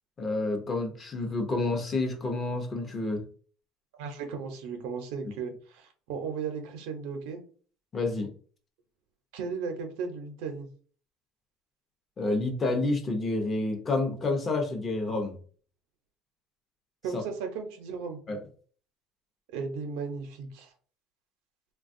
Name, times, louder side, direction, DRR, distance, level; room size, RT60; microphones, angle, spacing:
voice 1, 0.2-3.2 7.9-8.3 12.2-15.3 17.1-17.2 18.3-18.4, left 2 dB, 25° left, 4 dB, 0.6 m, -29 dB
voice 2, 3.9-7.4 9.3-10.7 17.0-18.2 19.5-20.7, right 5 dB, 90° right, 5 dB, 0.7 m, -35 dB
3.4 x 2.2 x 2.5 m, 0.44 s
cardioid pair, 140°, 0 cm